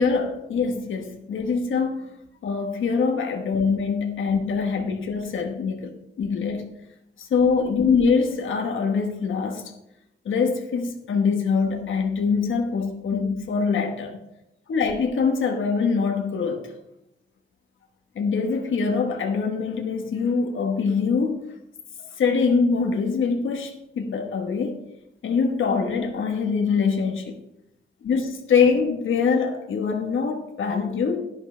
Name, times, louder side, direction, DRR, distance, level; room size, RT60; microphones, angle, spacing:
voice 1, 0.0-2.1 2.4-6.7 7.2-9.7 10.2-14.2 14.7-16.7 18.1-21.4 22.0-24.8 25.2-27.4 28.0-31.2, left 5 dB, 80° left, 1.3 m, -24 dB
11.0 x 10.5 x 3.3 m
wide cardioid pair, 155°, 20 cm